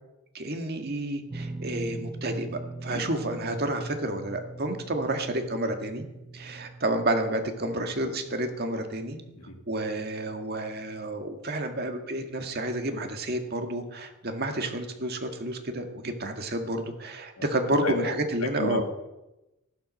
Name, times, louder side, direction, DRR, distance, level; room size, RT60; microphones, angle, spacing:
voice 1, 0.3-6.1 6.3-9.2 9.7-18.8, right 1 dB, 45° right, 5 dB, 1.9 m, -30 dB
sound 1, 1.3-13.5 13.8-14.0 15.7-15.8, right 2 dB, 20° right, 0.7 m, -43 dB
voice 2, 17.8-18.1 18.6-18.8, left 3 dB, 90° left, 5 dB, 2.0 m, -31 dB
14.5 x 12.0 x 6.4 m, 0.97 s
head